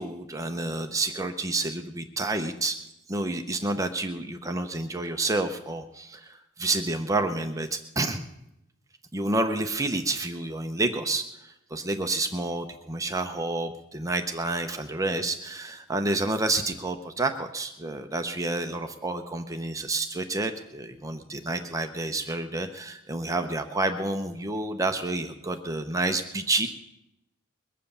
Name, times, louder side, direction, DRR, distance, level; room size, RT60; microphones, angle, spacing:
voice 1, 0.0-2.8 3.1-8.2 9.1-26.7, right 2 dB, 15° right, 6 dB, 0.7 m, -29 dB
21.5 x 7.6 x 6.8 m, 0.86 s
head